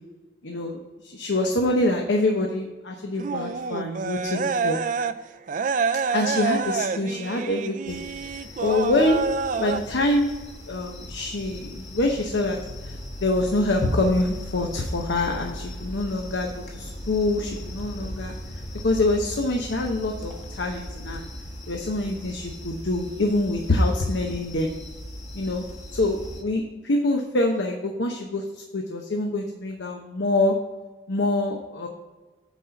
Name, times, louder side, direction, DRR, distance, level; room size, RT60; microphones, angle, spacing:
voice 1, 0.4-0.8 1.0-4.8 6.1-8.0 8.6-10.3 10.7-12.6 12.8-12.9 13.2-18.3 18.8-21.2 21.7-24.7 25.3-25.6 25.9-30.6 31.1-31.9, left 2 dB, 90° left, 2 dB, 0.9 m, -25 dB
sound 1, 3.2-5.1 5.5-9.8, right 5 dB, 45° right, 0.4 m, -27 dB
sound 2, 7.9-26.4, equal, 40° left, 1.3 m, -38 dB
8.9 x 4.2 x 5.7 m, 1.2 s
head